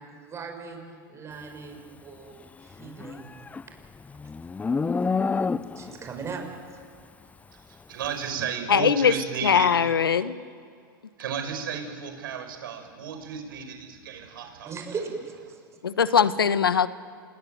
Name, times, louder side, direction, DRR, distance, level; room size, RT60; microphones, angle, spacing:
voice 1, 0.0-2.3 2.6-3.3 5.8-6.4 6.7-6.8 14.6-15.6, right 5 dB, 25° right, 3 dB, 6.9 m, -38 dB
Livestock farm animals working animals, 2.8-6.0, left 4 dB, 10° left, 0.6 m, -28 dB
voice 2, 7.9-9.7 11.2-14.7, right 7 dB, 70° right, 5 dB, 5.8 m, -33 dB
voice 3, 8.7-9.1 9.4-10.4 15.8-16.9, left 7 dB, 90° left, 14 dB, 1.2 m, -21 dB
27.5 x 22.5 x 9.5 m, 2.2 s
hypercardioid pair, 105°, 12 cm